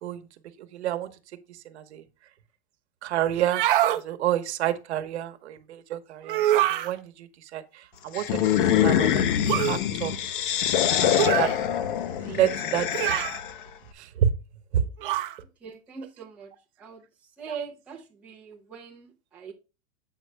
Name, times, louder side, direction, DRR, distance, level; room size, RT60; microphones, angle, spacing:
voice 1, 0.7-1.1 1.6-2.0 3.0-3.6 3.9-10.1 11.0-11.5 12.2-13.3 13.9-14.3 14.7-14.9, right 10 dB, 70° right, 1.0 m, -29 dB
sound 1, 3.4-4.0 6.2-6.9 9.5-9.8 11.2-11.6 12.9-13.4 15.0-15.4, right 13 dB, 50° right, 0.7 m, -24 dB
sound 2, 8.1-13.6, left 10 dB, 50° left, 0.7 m, -24 dB
voice 2, 15.6-16.5 16.8-17.0 17.4-19.5, right 6 dB, 5° right, 0.6 m, -41 dB
7.5 x 5.2 x 3.3 m
supercardioid pair, 175°, 34 cm